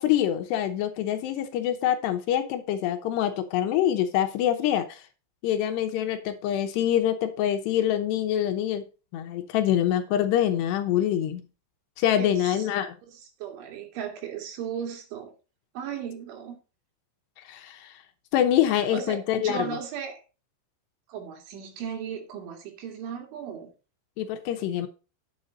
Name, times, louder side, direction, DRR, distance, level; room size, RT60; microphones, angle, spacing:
voice 1, 0.0-5.0 5.4-8.8 9.1-11.4 12.0-12.9 17.5-17.9 18.3-19.7 24.2-24.9, left 11 dB, 75° left, 8 dB, 2.9 m, -25 dB
voice 2, 12.2-12.7 13.1-15.3 15.7-16.6 18.7-20.2 21.1-23.7, right 8 dB, 85° right, 3 dB, 4.8 m, -36 dB
9.8 x 7.8 x 4.0 m, 0.32 s
omnidirectional pair, 5.3 m